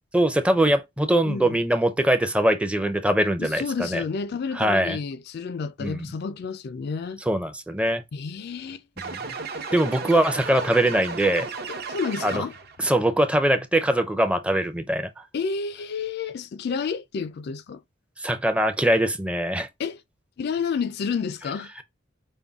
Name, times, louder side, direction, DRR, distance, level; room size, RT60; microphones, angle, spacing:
voice 1, 0.1-4.0 4.6-5.0 5.8-6.1 7.3-8.0 9.1-9.2 9.7-11.5 12.2-12.5 12.8-15.1 18.2-19.7, right 1 dB, 5° right, 0.5 m, -22 dB
voice 2, 1.2-1.6 3.4-7.2 8.1-8.8 11.9-12.6 15.3-17.8 19.8-20.0 20.4-21.7, left 5 dB, 55° left, 0.4 m, -30 dB
sound 1, 9.0-12.8, right 4 dB, 55° right, 0.7 m, -34 dB
5.3 x 2.2 x 3.5 m
head